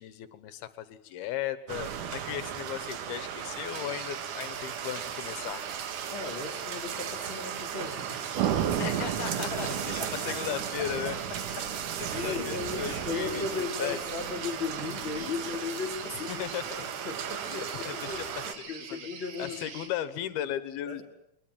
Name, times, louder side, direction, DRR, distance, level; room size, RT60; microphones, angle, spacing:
voice 1, 0.0-5.6 8.8-11.2 12.1-14.0 16.3-16.8 17.5-18.3 18.6-19.1 19.4-21.0, left 11 dB, 75° left, 13 dB, 3.1 m, -36 dB
sound 1, 1.7-18.6, right 9 dB, 60° right, 2.6 m, -35 dB
sound 2, 3.7-19.9, right 6 dB, 85° right, 4.6 m, -45 dB
voice 2, 6.1-8.9 9.3-11.8 12.1-16.4 16.8-19.7 20.9-21.0, left 4 dB, 35° left, 4 dB, 2.9 m, -37 dB
22.5 x 21.5 x 9.0 m, 0.76 s
omnidirectional pair, 4.5 m